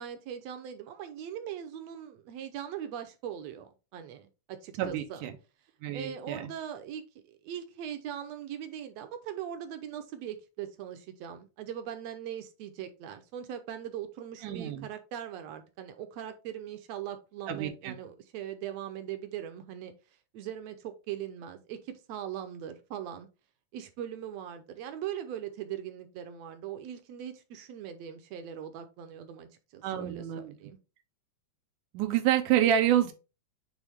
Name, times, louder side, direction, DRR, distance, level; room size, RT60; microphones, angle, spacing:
voice 1, 0.0-5.2 5.9-19.9 20.3-23.3 23.7-30.8, right 10 dB, 70° right, 1.8 m, -40 dB
voice 2, 4.8-5.3 5.8-6.5 14.4-14.9 17.5-17.9 29.8-30.5 31.9-33.1, right 11 dB, 90° right, 2.4 m, -28 dB
8.3 x 3.6 x 3.6 m
omnidirectional pair, 3.5 m